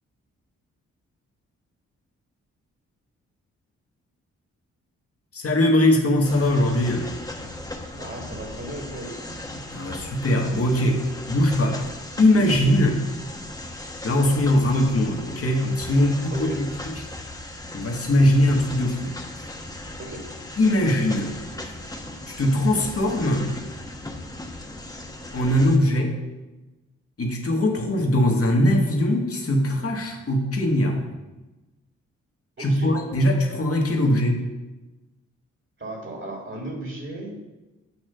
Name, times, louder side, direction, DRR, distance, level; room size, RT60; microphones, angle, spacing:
voice 1, 5.3-7.1 9.5-11.9 12.2-13.0 14.0-16.9 17.7-19.4 20.6-21.4 21.6-21.7 22.3-23.6 25.3-26.2 27.2-31.0 32.6-34.5, left 1 dB, 45° left, 1 dB, 1.6 m, -21 dB
sound 1, 6.2-25.8, left 1 dB, 10° left, 1.0 m, -37 dB
voice 2, 7.9-9.2 14.2-14.4 16.3-16.6 20.0-20.4 32.6-32.9 35.8-37.3, right 1 dB, 40° right, 0 dB, 2.2 m, -35 dB
8.7 x 3.1 x 6.5 m, 1.1 s
supercardioid pair, 45°, 32 cm